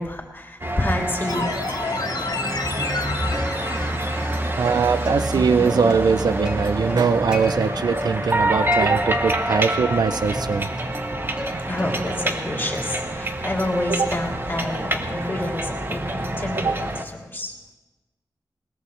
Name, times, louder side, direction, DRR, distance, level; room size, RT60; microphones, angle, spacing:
voice 1, 0.0-1.5 11.7-16.7 17.3-17.5, left 1 dB, 30° left, 0 dB, 3.1 m, -28 dB
sound 1, 0.6-17.0, right 1 dB, 35° right, 1.2 m, -27 dB
sound 2, 1.3-5.5 5.8-5.9, left 4 dB, 70° left, 0.9 m, -31 dB
Plucked string instrument, 1.9-2.5 2.8-2.9 3.3-5.3 5.6-7.5 7.9-8.4 8.7-9.7 10.1-11.5 11.8-12.3 12.7-16.9, equal, 15° right, 2.6 m, -36 dB
voice 2, 4.6-10.7 13.9-14.1 16.6-16.8, right 5 dB, 85° right, 12 dB, 0.5 m, -21 dB
20.5 x 18.5 x 3.3 m, 1.1 s
wide cardioid pair, 75°, 7 cm